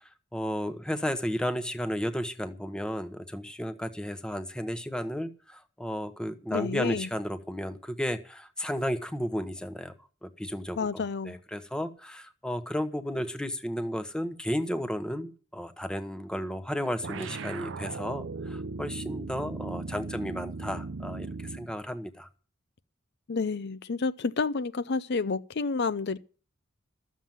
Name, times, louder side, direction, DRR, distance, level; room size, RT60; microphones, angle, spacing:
voice 1, 0.3-9.9 10.2-10.9 11.2-22.3, equal, 5° left, 1.0 m, -33 dB
voice 2, 6.5-7.1 10.8-11.4 23.3-26.2, left 4 dB, 55° left, 0.6 m, -30 dB
sound 1, 17.0-21.7, right 3 dB, 65° right, 0.6 m, -37 dB
13.5 x 7.4 x 9.3 m
head